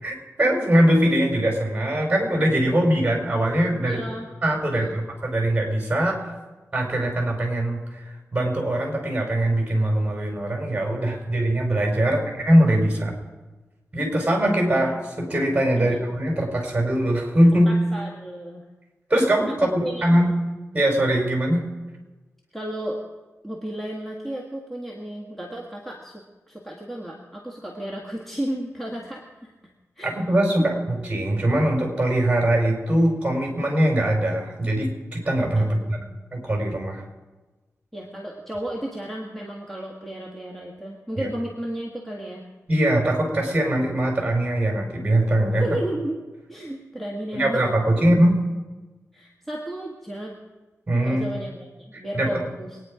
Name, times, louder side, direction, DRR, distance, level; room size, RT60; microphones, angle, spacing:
voice 1, 0.0-4.0 4.4-6.3 6.7-13.1 13.9-17.7 19.1-20.3 20.7-21.6 30.0-36.0 36.3-37.0 41.2-41.3 42.7-45.7 47.3-48.4 50.9-51.3 52.1-52.4, right 1 dB, 20° right, 1 dB, 4.9 m, -22 dB
voice 2, 3.9-5.0 12.0-12.3 15.7-16.0 17.7-18.7 19.6-20.2 22.5-23.0 23.4-29.5 30.0-30.1 30.6-30.7 35.6-36.1 37.9-42.4 45.6-46.2 46.5-47.6 49.1-50.4 51.0-52.8, right 1 dB, 5° left, -2 dB, 1.9 m, -33 dB
23.5 x 9.9 x 5.0 m, 1.2 s
wide cardioid pair, 105°, 5 cm